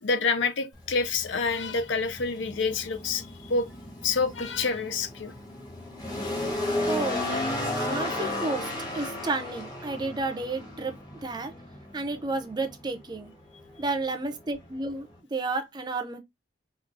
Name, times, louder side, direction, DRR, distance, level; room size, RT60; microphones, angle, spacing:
voice 1, 0.0-3.7 4.0-5.3, left 4 dB, 80° left, 0.6 m, -27 dB
sound 1, 0.7-15.2, left 1 dB, 20° left, 1.1 m, -35 dB
voice 2, 6.9-7.2 7.7-8.7 8.9-10.9 11.2-11.5 11.9-13.3 13.8-16.2, right 3 dB, 25° right, 0.5 m, -31 dB
4.5 x 2.4 x 2.4 m
head